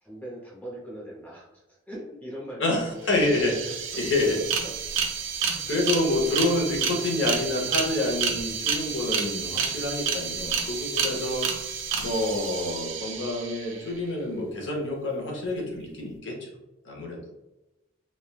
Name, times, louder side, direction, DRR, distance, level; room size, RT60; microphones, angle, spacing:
voice 1, 0.0-2.6 2.9-3.0 4.6-4.7 5.4-5.8, right 1 dB, 10° left, -6 dB, 0.7 m, -41 dB
voice 2, 2.6-4.4 5.4-11.5 12.0-16.5 16.8-17.2, left 2 dB, 70° left, -1 dB, 0.7 m, -28 dB
sound 1, 2.8-2.9 3.1-13.9, right 6 dB, 80° right, 0.4 m, -30 dB
3.1 x 2.1 x 2.3 m, 0.99 s
head